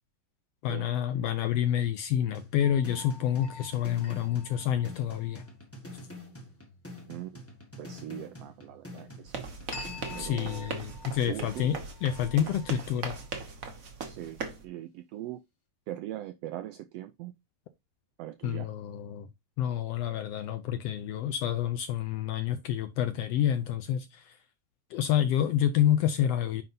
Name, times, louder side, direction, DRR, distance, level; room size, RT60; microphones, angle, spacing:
voice 1, 0.6-5.5 10.2-13.2 18.4-19.3 19.6-24.4 24.9-26.6, left 10 dB, 80° left, 1.5 m, -28 dB
sound 1, 2.3-10.3, left 1 dB, 20° left, 0.4 m, -46 dB
sound 2, 2.6-5.5 9.7-13.3, left 4 dB, 55° left, 3.3 m, -48 dB
voice 2, 7.1-7.4 7.8-9.5 10.1-10.9 11.3-11.7 14.1-15.4 15.9-17.3 18.2-18.7, right 13 dB, 85° right, 1.4 m, -41 dB
sound 3, 9.3-14.6, right 4 dB, 55° right, 0.9 m, -39 dB
9.2 x 5.5 x 2.7 m
omnidirectional pair, 3.3 m